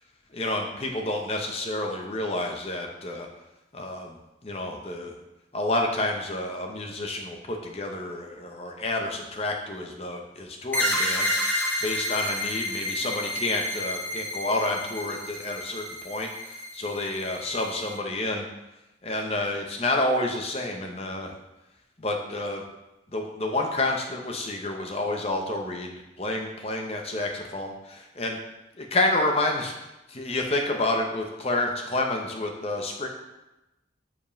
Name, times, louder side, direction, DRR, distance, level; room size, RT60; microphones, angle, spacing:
voice 1, 0.3-3.3 3.7-4.2 4.4-5.1 5.5-18.5 19.0-21.4 22.0-22.6 23.1-28.4 28.8-29.7 30.1-33.1, left 2 dB, 35° left, 2 dB, 0.9 m, -29 dB
sound 1, 10.7-18.0, left 1 dB, 10° left, 1.3 m, -30 dB
5.3 x 5.0 x 5.2 m, 0.96 s
head